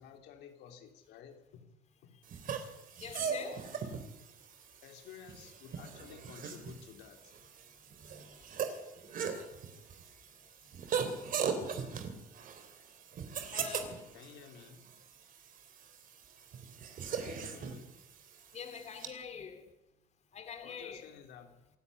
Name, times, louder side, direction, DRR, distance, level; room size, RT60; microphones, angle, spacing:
voice 1, 0.0-1.7 2.0-2.2 4.8-7.3 14.1-14.8 17.2-17.9 20.6-21.6, left 7 dB, 80° left, 3.1 m, -53 dB
sound 1, 2.3-19.1, right 6 dB, 55° right, 3.4 m, -40 dB
voice 2, 3.0-3.7 8.1-8.3 13.5-14.0 18.5-19.7 20.3-21.1, left 6 dB, 40° left, 2.7 m, -45 dB
27.0 x 11.0 x 9.6 m
cardioid pair, 110°, 17 cm